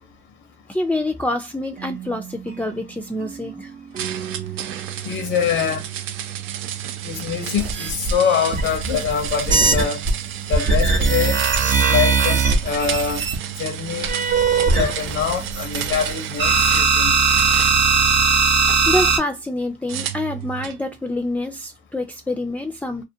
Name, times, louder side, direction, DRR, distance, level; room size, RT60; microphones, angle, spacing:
voice 1, 0.7-3.7 18.9-23.0, left 1 dB, 5° left, 0.4 m, -26 dB
sound 1, 1.8-6.7, right 8 dB, 45° right, 0.6 m, -38 dB
sound 2, 4.0-16.9 17.3-18.8 19.9-20.8, right 11 dB, 90° right, 0.4 m, -31 dB
voice 2, 5.0-5.8 7.0-10.0 10.5-11.4 11.9-13.2 13.6-14.1 14.6-17.1, left 7 dB, 85° left, 0.7 m, -24 dB
sound 3, 7.6-10.1 10.5-13.4 14.1-16.1 16.4-19.2, right 4 dB, 70° right, 0.9 m, -19 dB
2.4 x 2.4 x 2.6 m
cardioid pair, 90°, 20 cm